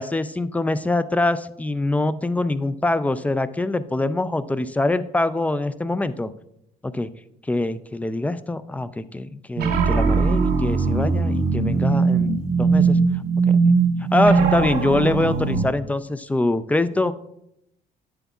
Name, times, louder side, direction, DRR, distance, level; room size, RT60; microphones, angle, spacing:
voice 1, 0.0-6.3 6.8-7.1 7.5-13.0 13.4-13.7 14.1-17.1, left 2 dB, 10° left, 14 dB, 0.3 m, -24 dB
sound 1, 9.6-15.6, right 4 dB, 75° right, 0.8 m, -20 dB
10.0 x 7.9 x 2.3 m, 0.78 s
cardioid pair, 110°, 17 cm